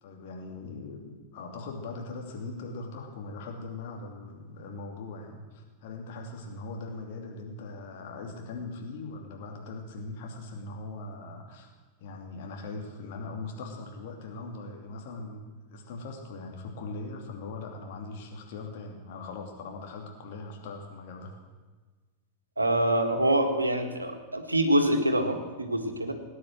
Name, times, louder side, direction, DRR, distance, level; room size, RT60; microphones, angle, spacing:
voice 1, 0.0-11.7 12.0-21.4, left 3 dB, 50° left, 2 dB, 2.8 m, -40 dB
voice 2, 22.6-26.1, right 1 dB, 80° right, 5 dB, 1.7 m, -25 dB
18.0 x 9.4 x 7.7 m, 1.3 s
figure-of-eight pair, 90°, 0 cm